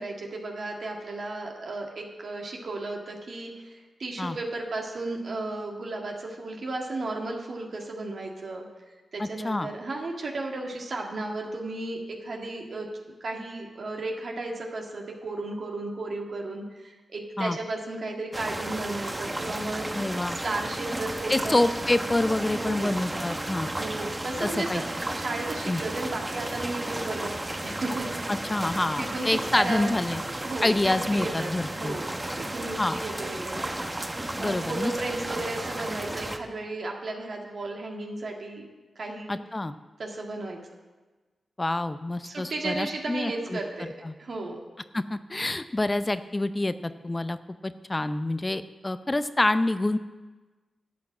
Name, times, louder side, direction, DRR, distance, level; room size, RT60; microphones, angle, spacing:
voice 1, 0.0-8.7 9.1-12.9 13.2-19.9 20.2-21.6 22.5-23.0 23.7-24.8 25.1-28.3 29.0-29.9 30.4-33.8 34.4-38.7 38.9-39.4 40.0-40.6 42.2-43.9 44.2-44.6, right 2 dB, 65° right, 0 dB, 1.8 m, -34 dB
voice 2, 9.2-9.7 17.4-17.6 19.9-20.4 21.3-23.7 24.4-24.8 25.7-25.8 28.3-30.2 30.6-32.0 32.8-33.0 34.4-34.9 39.3-39.7 41.6-43.6 44.0-44.1 44.9-47.4 47.6-50.0, left 2 dB, 25° left, 12 dB, 0.6 m, -27 dB
sound 1, 18.3-36.4, right 1 dB, 20° right, 1.0 m, -33 dB
11.5 x 5.9 x 8.6 m, 1.3 s
cardioid pair, 50°, 0 cm